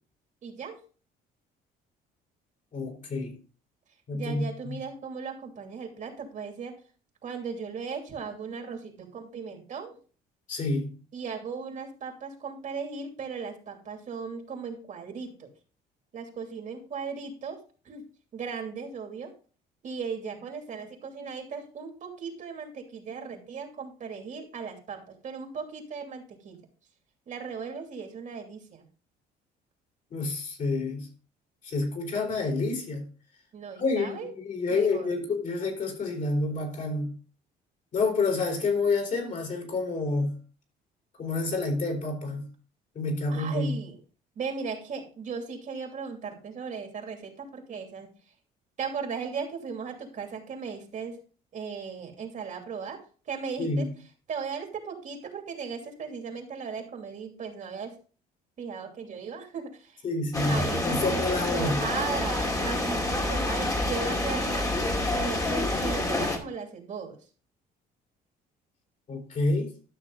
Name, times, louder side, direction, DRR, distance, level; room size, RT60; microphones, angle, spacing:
voice 1, 0.4-0.8 4.1-6.7 7.2-10.0 11.1-15.5 16.1-17.6 17.8-18.0 18.3-19.3 19.8-26.6 27.3-28.9 33.5-34.3 34.7-35.1 43.3-44.0 44.4-48.1 48.8-51.2 51.5-53.0 53.3-53.9 54.3-57.9 58.6-60.0 60.4-64.7 65.1-67.2, right 5 dB, 50° right, 3 dB, 2.8 m, -37 dB
voice 2, 2.7-3.4 4.1-4.8 10.5-10.9 30.1-31.1 31.6-33.1 33.8-37.1 37.9-40.3 41.2-42.5 42.9-43.8 53.6-53.9 60.0-61.8 69.1-69.7, left 3 dB, 50° left, 1 dB, 4.2 m, -28 dB
sound 1, 60.3-66.4, left 1 dB, 20° left, 2.3 m, -28 dB
12.5 x 6.4 x 3.9 m, 0.39 s
cardioid pair, 110°, 17 cm